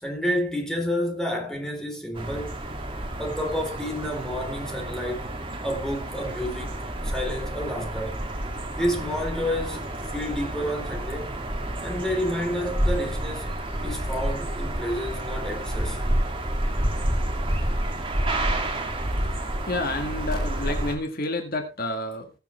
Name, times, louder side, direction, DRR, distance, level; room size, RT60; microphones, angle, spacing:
voice 1, 0.0-2.6 3.2-5.3 5.6-8.2 8.7-11.4 11.8-16.0, equal, 5° left, 3.4 m, -30 dB
sound 1, 2.1-21.0, right 1 dB, 30° right, 2.3 m, -29 dB
voice 2, 19.1-22.3, left 2 dB, 60° left, 1.8 m, -30 dB
20.0 x 6.9 x 3.2 m
head